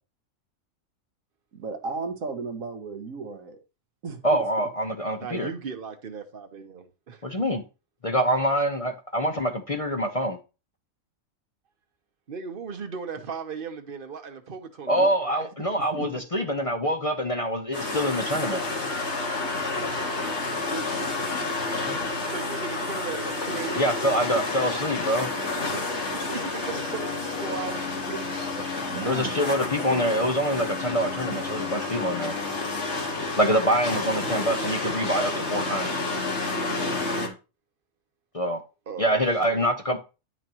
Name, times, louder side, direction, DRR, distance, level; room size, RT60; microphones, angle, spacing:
voice 1, 1.5-3.6 4.0-4.4 14.9-15.1 15.8-16.1 20.7-22.3 28.1-28.3 28.8-29.3 29.8-30.1 34.3-34.4, right 4 dB, 85° right, 1.6 m, -36 dB
voice 2, 4.2-5.5 7.2-7.6 8.0-10.4 14.9-18.6 23.8-25.3 29.0-32.3 33.4-36.0 38.3-38.6 39.0-40.0, equal, 35° left, 0.7 m, -25 dB
voice 3, 5.2-7.2 12.3-15.5 16.6-16.7 19.8-20.6 22.0-23.9 25.7-25.8 26.3-27.8 31.6-31.7 33.4-33.7 34.3-35.4 36.0-36.1 38.9-39.2 39.5-39.6, right 6 dB, 45° right, 1.1 m, -37 dB
sound 1, 17.7-37.3, left 3 dB, 60° left, 2.1 m, -30 dB
10.0 x 6.1 x 3.0 m
omnidirectional pair, 1.4 m